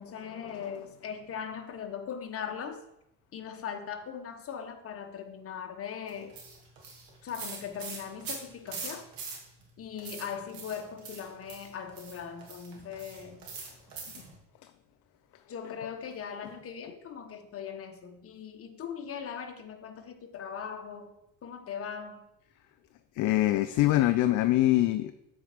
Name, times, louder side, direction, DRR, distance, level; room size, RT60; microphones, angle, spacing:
voice 1, 0.0-2.8 3.3-6.3 7.2-9.0 9.8-13.5 15.5-21.1 21.4-22.2, left 7 dB, 40° left, 5 dB, 1.1 m, -39 dB
sound 1, 6.1-9.7 10.0-14.4, right 4 dB, 75° right, 2.4 m, -42 dB
voice 2, 23.2-25.1, left 15 dB, 60° left, 11 dB, 0.5 m, -24 dB
8.0 x 4.5 x 5.1 m, 0.86 s
cardioid pair, 110°, 35 cm